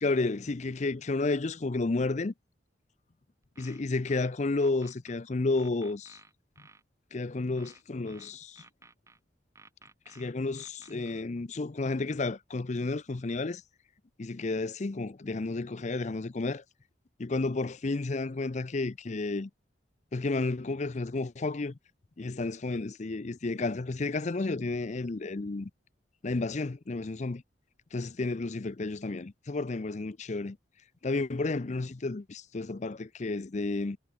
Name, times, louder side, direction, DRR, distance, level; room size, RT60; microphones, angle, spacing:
voice 1, 0.0-2.3 3.6-6.2 7.1-8.6 10.1-13.6 14.2-16.6 17.2-19.5 20.1-21.7 22.2-25.7 26.2-27.4 27.9-30.6 31.0-34.0, left 3 dB, 40° left, 0.6 m, -31 dB
sound 1, 3.4-5.2 5.6-6.8 7.6-9.2 9.6-11.2, right 3 dB, 15° right, 2.2 m, -56 dB
head